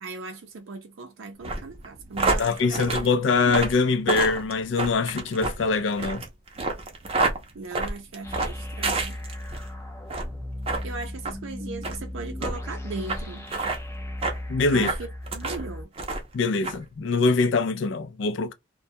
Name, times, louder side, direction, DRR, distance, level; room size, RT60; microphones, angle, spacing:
voice 1, 0.0-3.4 7.5-9.2 10.8-13.5 14.7-15.9, right 3 dB, 85° right, 0.5 m, -38 dB
sound 1, 1.4-9.6 10.0-10.3 10.6-10.8 11.2-11.4 11.8-12.0 12.4-12.5 13.1-13.2 13.5-13.8 14.2-14.4 14.8-15.6 16.0-16.3 16.6-16.8, right 3 dB, 30° right, 0.6 m, -28 dB
voice 2, 2.4-6.3 14.5-14.9 16.3-18.5, left 4 dB, 70° left, 0.4 m, -23 dB
sound 2, 8.2-15.8, left 1 dB, 15° left, 0.4 m, -36 dB
2.2 x 2.2 x 2.6 m
head